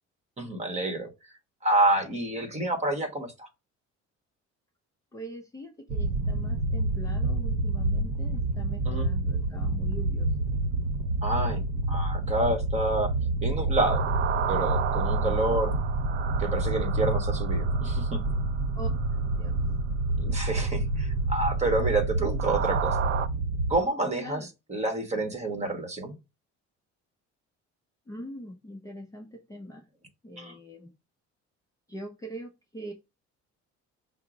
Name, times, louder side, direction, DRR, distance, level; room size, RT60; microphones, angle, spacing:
voice 1, 0.4-1.1 1.6-3.5 8.9-9.1 11.2-13.1 13.4-14.0 14.5-15.7 16.4-18.2 20.2-23.0 23.7-26.2 30.4-30.6, right 2 dB, 25° right, 1.1 m, -28 dB
voice 2, 5.1-10.5 15.2-15.4 18.7-18.9 19.2-19.6 24.2-24.5 28.1-29.9 30.2-30.9 31.9-32.9, equal, 10° left, 0.5 m, -42 dB
sound 1, 5.9-23.8, right 2 dB, 80° right, 0.7 m, -28 dB
sound 2, 13.4-23.3, right 6 dB, 40° right, 0.4 m, -32 dB
5.5 x 2.0 x 4.8 m
cardioid pair, 140°, 29 cm